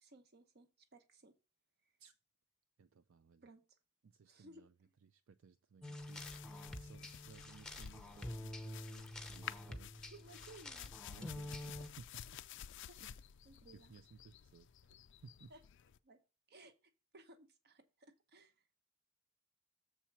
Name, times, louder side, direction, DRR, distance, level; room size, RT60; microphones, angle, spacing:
voice 1, 0.0-1.3 3.4-3.8 4.3-4.9 10.1-10.9 12.9-13.1 13.4-13.9 15.5-15.6 16.0-16.2 16.5-18.6, right 2 dB, 50° right, 1.0 m, -60 dB
voice 2, 2.8-3.4 4.1-4.7 5.1-6.2 6.7-9.9 11.1-12.1 13.0-13.1 13.9-14.7 15.2-15.5, right 5 dB, 70° right, 0.4 m, -59 dB
sound 1, 5.8-11.9, left 1 dB, 5° left, 0.7 m, -48 dB
sound 2, 6.0-16.0, left 10 dB, 60° left, 0.4 m, -53 dB
7.0 x 4.3 x 5.8 m
head